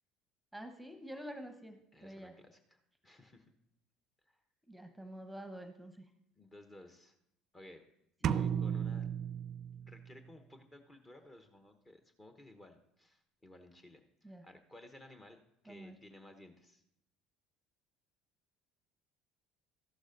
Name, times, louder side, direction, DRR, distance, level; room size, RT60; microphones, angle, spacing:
voice 1, 0.5-2.3 4.7-6.0 8.2-8.4 14.2-14.4 15.7-16.0, right 1 dB, 5° right, 7 dB, 1.0 m, -48 dB
voice 2, 1.9-3.5 4.3-4.4 6.3-7.1 7.5-7.9 8.2-9.1 9.8-15.4 15.6-16.8, left 1 dB, 20° left, 6 dB, 1.0 m, -56 dB
sound 1, 8.2-10.1, right 8 dB, 45° right, 0.3 m, -34 dB
13.5 x 11.5 x 2.6 m, 0.79 s
figure-of-eight pair, 60°, 0 cm